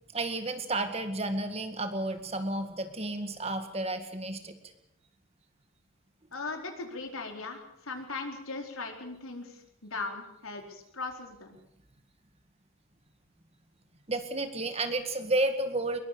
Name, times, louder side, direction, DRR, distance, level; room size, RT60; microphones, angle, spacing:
voice 1, 0.1-4.5 14.1-16.0, right 2 dB, 30° right, 8 dB, 2.0 m, -31 dB
voice 2, 6.3-11.6, left 3 dB, 85° left, 3 dB, 4.5 m, -39 dB
22.0 x 22.0 x 7.0 m, 0.76 s
head